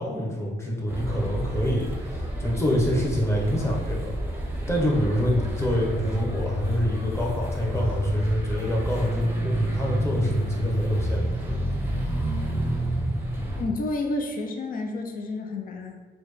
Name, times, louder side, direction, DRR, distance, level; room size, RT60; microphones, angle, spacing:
voice 1, 0.0-4.2 4.7-11.3, equal, 15° left, -3 dB, 0.9 m, -26 dB
sound 1, 0.9-13.6, right 1 dB, 10° right, 0.7 m, -29 dB
voice 2, 13.6-16.1, left 2 dB, 45° left, 3 dB, 0.6 m, -30 dB
4.2 x 2.2 x 3.2 m, 1.3 s
cardioid pair, 90°, 20 cm